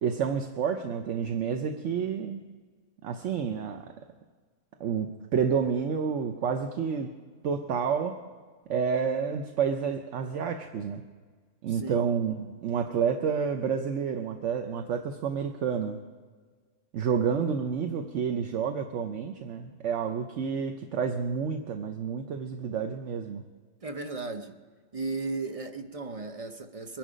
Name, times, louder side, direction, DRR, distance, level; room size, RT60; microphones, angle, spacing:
voice 1, 0.0-2.4 3.0-3.9 4.8-7.1 7.4-8.2 8.7-11.0 11.6-16.0 16.9-23.4, right 6 dB, 60° right, 6 dB, 1.0 m, -29 dB
voice 2, 11.7-12.1 23.8-24.5 24.9-27.0, right 3 dB, 40° right, 7 dB, 0.5 m, -35 dB
23.0 x 10.5 x 5.1 m, 1.5 s
omnidirectional pair, 1.6 m